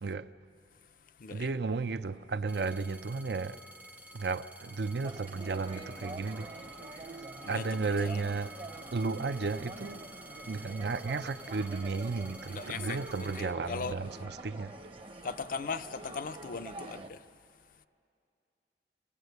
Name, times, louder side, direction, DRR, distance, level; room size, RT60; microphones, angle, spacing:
voice 1, 1.3-3.6 4.1-8.5 8.9-10.1 10.5-14.7, right 4 dB, 65° right, 0.6 m, -34 dB
sound 1, 2.5-14.2 14.9-15.5, right 1 dB, 10° right, 0.5 m, -51 dB
sound 2, 5.0-17.1, right 2 dB, 30° right, 0.8 m, -46 dB
voice 2, 7.4-8.3 12.5-14.0 15.2-17.2, left 5 dB, 50° left, 0.5 m, -39 dB
25.5 x 17.5 x 8.0 m
head